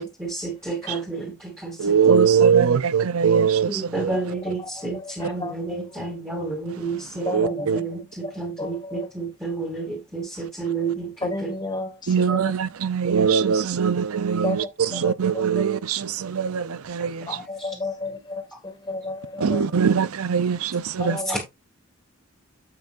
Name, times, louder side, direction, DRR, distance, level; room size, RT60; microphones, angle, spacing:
voice 1, 0.0-2.0 3.7-11.5 17.6-17.7 21.3-21.4, right 3 dB, 10° right, 2.5 m, -30 dB
voice 2, 1.8-4.2 7.2-7.8 12.1-17.3 19.4-21.2, right 6 dB, 85° right, 0.6 m, -21 dB
voice 3, 4.4-5.6 5.9-6.1 7.3-7.9 8.2-9.1 11.2-12.5 14.4-15.6 16.3-16.4 17.3-19.6 21.0-21.4, left 2 dB, 20° left, 2.0 m, -33 dB
9.2 x 7.9 x 2.5 m
head